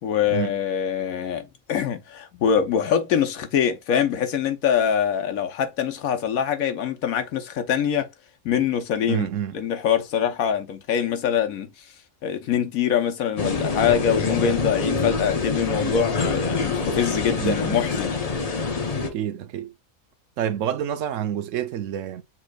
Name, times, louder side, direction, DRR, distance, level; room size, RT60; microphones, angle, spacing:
voice 1, 0.0-8.1 8.4-9.3 9.5-11.7 12.2-18.1, left 8 dB, 90° left, 1.3 m, -24 dB
voice 2, 9.1-9.6 17.4-17.8 19.0-19.7 20.4-22.2, right 10 dB, 70° right, 0.9 m, -28 dB
sound 1, 13.4-19.1, left 4 dB, 35° left, 0.7 m, -25 dB
7.2 x 3.0 x 2.3 m
omnidirectional pair, 1.4 m